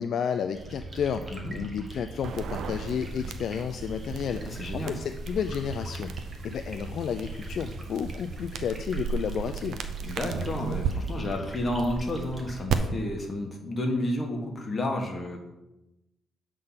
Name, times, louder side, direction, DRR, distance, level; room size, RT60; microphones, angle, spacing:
voice 1, 0.0-6.1 6.4-9.8, left 7 dB, 65° left, 8 dB, 0.4 m, -31 dB
sound 1, 0.5-12.6, right 2 dB, 25° right, 1.5 m, -41 dB
sound 2, 2.2-10.9 12.7-12.8, right 7 dB, 75° right, 0.6 m, -35 dB
voice 2, 4.4-5.0 10.0-15.4, left 1 dB, 30° left, 1 dB, 1.6 m, -31 dB
7.8 x 3.7 x 5.7 m, 0.97 s
cardioid pair, 90°, 0 cm